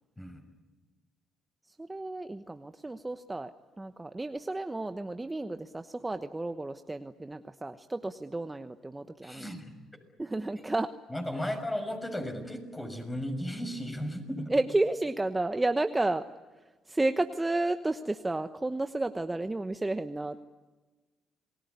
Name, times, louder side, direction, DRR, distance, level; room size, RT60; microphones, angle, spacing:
voice 1, 1.7-9.5 10.2-10.9 11.4-11.6 14.5-16.3 16.6-20.4, right 2 dB, 15° right, 8 dB, 1.1 m, -32 dB
voice 2, 9.2-9.7 11.1-14.5, equal, 15° left, 6 dB, 6.4 m, -35 dB
28.0 x 20.5 x 9.6 m, 1.3 s
supercardioid pair, 70°, 0 cm